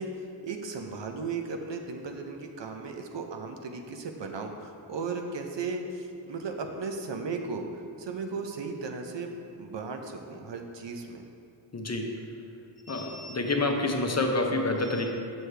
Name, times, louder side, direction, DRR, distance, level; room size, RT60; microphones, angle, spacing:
voice 1, 0.0-11.2, right 4 dB, 75° right, 4 dB, 0.7 m, -36 dB
voice 2, 11.7-12.4 12.9-15.1, left 2 dB, 35° left, 3 dB, 0.7 m, -28 dB
6.4 x 6.3 x 3.3 m, 2.6 s
wide cardioid pair, 55°, 43 cm